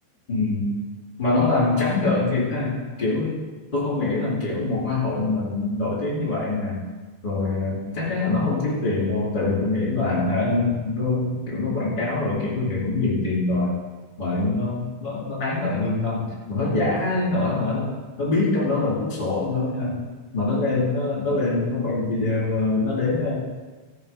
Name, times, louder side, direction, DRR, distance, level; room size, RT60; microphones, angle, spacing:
voice 1, 0.3-0.7 1.2-3.4 3.7-6.8 7.2-13.7 14.2-16.2 16.5-20.0 20.3-23.3, left 3 dB, 10° left, -8 dB, 3.7 m, -24 dB
15.0 x 6.8 x 5.6 m, 1.3 s
omnidirectional pair, 4.8 m